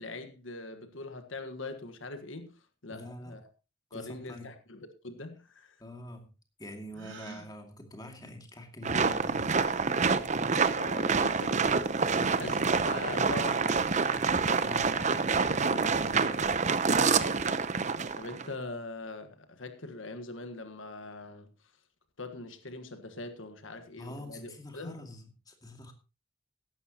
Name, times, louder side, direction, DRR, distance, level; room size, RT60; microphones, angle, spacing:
voice 1, 0.0-3.4 3.9-5.8 10.7-11.8 12.3-14.2 18.1-21.7 22.2-25.0, left 2 dB, 85° left, 1.5 m, -42 dB
voice 2, 2.9-3.4 3.9-4.6 5.8-6.3 6.6-9.6 12.1-12.7 14.5-17.0 24.0-25.9, left 1 dB, 20° left, 2.3 m, -45 dB
Gasp, 6.9-7.5, right 3 dB, 75° right, 4.2 m, -45 dB
sound 1, 8.8-18.5, right 4 dB, 40° right, 0.8 m, -27 dB
16.0 x 12.0 x 2.9 m
head